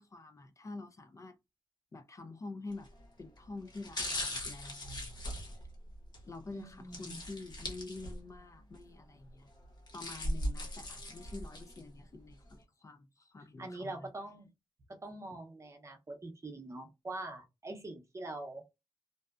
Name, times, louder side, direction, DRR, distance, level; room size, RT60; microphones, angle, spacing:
voice 1, 0.0-1.4 1.9-2.9 3.2-5.1 6.3-9.5 9.9-14.1, left 3 dB, 35° left, 0.3 m, -47 dB
sound 1, 2.7-3.0 3.7-6.2 6.9-8.4 8.7-8.8 9.6-11.8 12.3-12.4, left 1 dB, 50° left, 1.0 m, -39 dB
voice 2, 6.5-7.2 13.6-14.5 14.9-18.6, right 2 dB, 35° right, 0.7 m, -44 dB
2.6 x 2.1 x 2.3 m
wide cardioid pair, 95°, 9 cm